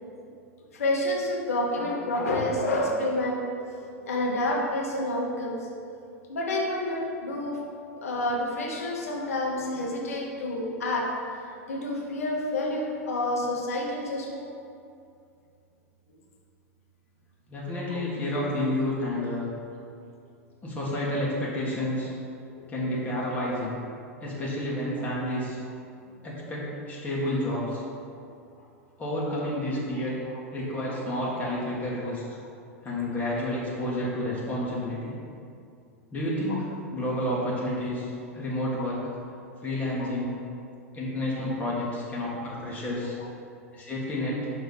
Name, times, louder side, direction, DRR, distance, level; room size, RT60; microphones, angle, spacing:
voice 1, 0.7-5.7 6.3-7.6 8.0-11.1 11.5-14.5 17.9-18.0 22.5-22.7 26.2-26.3 28.1-28.2 30.3-30.4 33.1-33.2 36.5-36.6 40.0-40.1 43.2-43.3, left 1 dB, 75° left, -1 dB, 1.1 m, -29 dB
voice 2, 17.5-19.5 20.6-22.1 22.7-23.8 24.2-25.6 26.2-27.8 29.0-30.2 30.5-32.2 32.8-35.1 36.1-39.0 39.6-40.4 40.9-43.2 43.7-44.5, left 1 dB, 20° left, -6 dB, 1.4 m, -30 dB
5.7 x 3.1 x 5.7 m, 2.5 s
hypercardioid pair, 95°, 8 cm